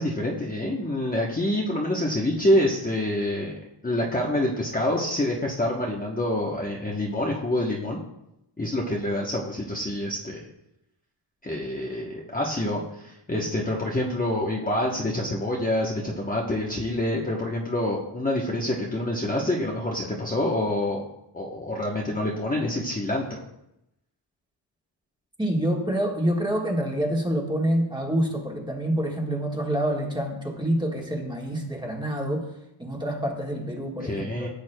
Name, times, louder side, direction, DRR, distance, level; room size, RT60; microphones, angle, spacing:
voice 1, 0.0-3.5 3.8-8.0 8.6-10.4 11.4-21.0 21.3-23.3 34.0-34.5, left 1 dB, 20° left, -3 dB, 0.9 m, -26 dB
voice 2, 25.4-32.5 32.8-34.5, right 1 dB, 10° right, 0 dB, 1.4 m, -27 dB
15.0 x 8.0 x 2.2 m, 0.86 s
wide cardioid pair, 140°, 48 cm